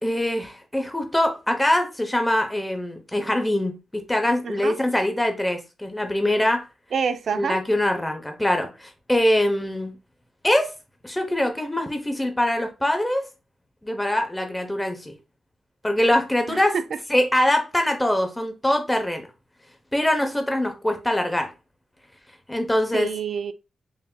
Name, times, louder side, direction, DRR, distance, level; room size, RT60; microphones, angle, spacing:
voice 1, 0.0-6.6 7.3-9.9 10.4-10.7 11.0-13.2 13.8-15.1 15.8-16.8 17.1-19.3 19.9-21.5 22.5-23.1, left 1 dB, 10° left, 0.7 m, -23 dB
voice 2, 4.4-4.8 6.9-7.6 16.5-17.0 22.9-23.5, right 6 dB, 60° right, 0.4 m, -27 dB
5.7 x 2.7 x 2.2 m
wide cardioid pair, 145°, 0 cm